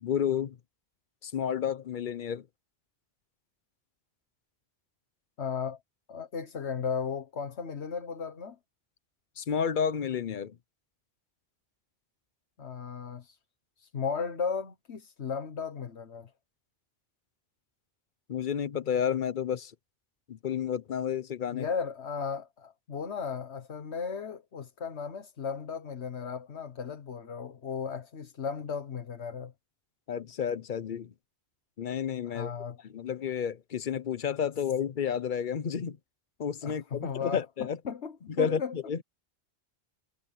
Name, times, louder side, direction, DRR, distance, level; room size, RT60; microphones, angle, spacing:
voice 1, 0.0-0.6 1.2-2.5 9.4-10.6 18.3-19.7 20.3-21.7 30.1-31.1 31.8-32.5 32.8-36.0 36.4-37.8 38.3-39.0, left 8 dB, 55° left, 0.9 m, -31 dB
voice 2, 5.4-5.8 6.1-8.6 12.6-13.4 13.8-16.3 21.5-29.5 32.3-32.8 36.6-37.4 37.9-38.7, left 6 dB, 85° left, 1.6 m, -35 dB
omnidirectional pair, 1.1 m